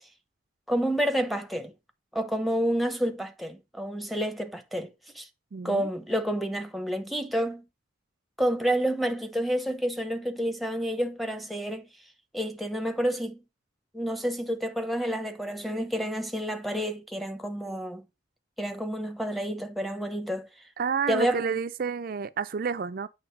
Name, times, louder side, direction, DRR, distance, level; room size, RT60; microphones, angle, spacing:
voice 1, 0.7-1.7 2.1-5.3 5.6-7.6 8.4-11.9 12.3-13.4 13.9-18.0 18.6-20.5 21.1-21.5, equal, ahead, 0.7 m, -29 dB
voice 2, 5.5-5.9 20.8-23.1, right 6 dB, 45° right, 0.4 m, -30 dB
8.6 x 3.2 x 5.9 m
head